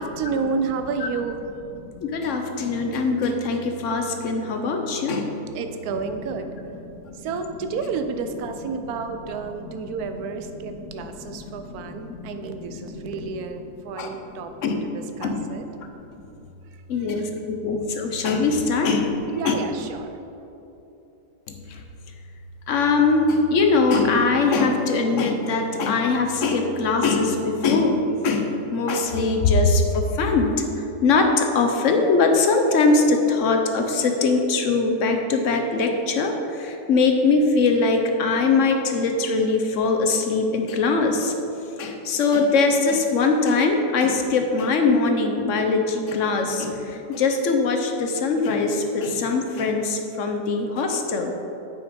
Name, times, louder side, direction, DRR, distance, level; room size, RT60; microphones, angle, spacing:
voice 1, 0.0-1.4 5.5-6.5 7.1-15.6 16.6-17.3 19.3-20.3, right 5 dB, 70° right, 7 dB, 1.0 m, -31 dB
voice 2, 1.8-5.4 6.9-7.3 10.6-10.8 11.2-11.6 12.0-13.2 14.0-14.2 14.6-14.8 15.2-15.5 15.8-16.3 16.9-19.6 21.5-21.8 22.7-41.3 41.8-51.3, left 3 dB, 60° left, 4 dB, 0.9 m, -22 dB
7.9 x 5.9 x 5.1 m, 2.9 s
omnidirectional pair, 1.9 m